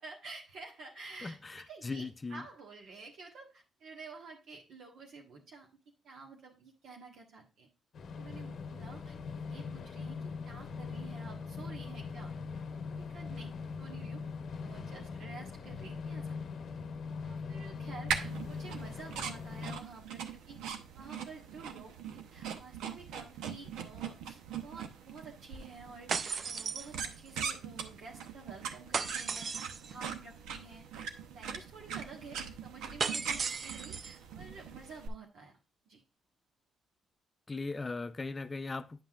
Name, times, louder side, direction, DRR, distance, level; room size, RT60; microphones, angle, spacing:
voice 1, 0.0-5.7 6.0-7.7 8.2-9.2 9.5-14.2 14.6-16.4 17.2-20.6 20.9-31.0 31.3-35.6 35.8-36.0, right 4 dB, 70° right, 1.5 m, -51 dB
voice 2, 1.2-2.4 37.5-39.0, left 3 dB, 25° left, 0.5 m, -39 dB
sound 1, 7.9-19.8, left 5 dB, 60° left, 0.8 m, -41 dB
sound 2, 18.1-35.1, right 7 dB, 90° right, 0.8 m, -41 dB
sound 3, 26.1-27.4 28.9-29.9 33.0-34.2, right 5 dB, 45° right, 0.4 m, -36 dB
9.5 x 5.5 x 2.4 m
cardioid pair, 90°, 0 cm